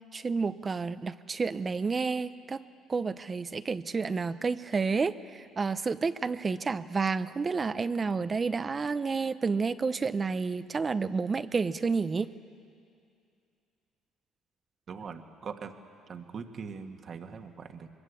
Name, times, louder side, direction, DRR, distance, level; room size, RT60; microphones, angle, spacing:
voice 1, 0.1-2.6 2.9-12.3, right 4 dB, 30° right, 12 dB, 0.7 m, -30 dB
voice 2, 14.9-15.7 16.1-17.9, right 6 dB, 50° right, 5 dB, 1.6 m, -41 dB
22.5 x 21.5 x 8.4 m, 2.5 s
supercardioid pair, 80°, 0 cm